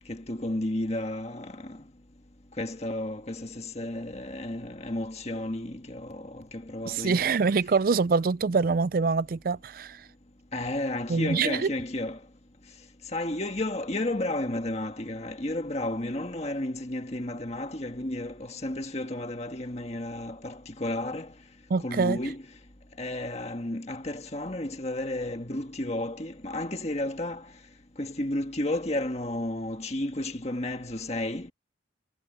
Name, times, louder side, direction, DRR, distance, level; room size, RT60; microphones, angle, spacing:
voice 1, 0.1-1.8 2.6-7.3 10.5-12.2 13.1-21.3 21.8-22.4 23.0-27.4 28.0-31.5, left 1 dB, 35° left, 1.7 m, -32 dB
voice 2, 6.9-10.1 11.1-11.7 21.7-22.2, right 4 dB, 50° right, 0.4 m, -25 dB
head